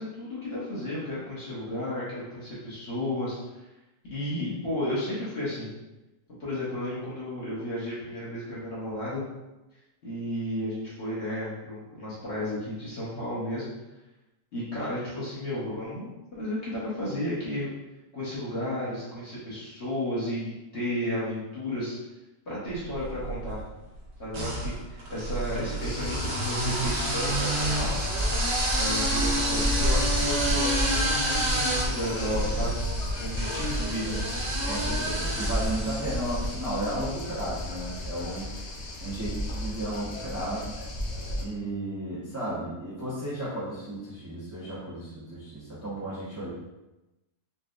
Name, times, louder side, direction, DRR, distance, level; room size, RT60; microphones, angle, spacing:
voice 1, 0.0-3.4 4.1-5.7 6.4-9.2 10.0-13.7 14.5-17.7 18.1-21.9 22.5-23.6 24.2-28.0 28.7-32.8 33.2-34.2, left 1 dB, 45° left, -9 dB, 1.3 m, -33 dB
sound 1, 22.9-23.6 24.3-36.6, right 1 dB, 85° right, 1.7 m, -29 dB
sound 2, 25.8-41.4, left 1 dB, 75° left, 0.6 m, -32 dB
voice 2, 34.6-38.5 39.0-40.8 41.4-46.5, right 1 dB, 15° right, -10 dB, 0.6 m, -34 dB
4.1 x 2.4 x 2.4 m, 1.0 s
omnidirectional pair, 1.8 m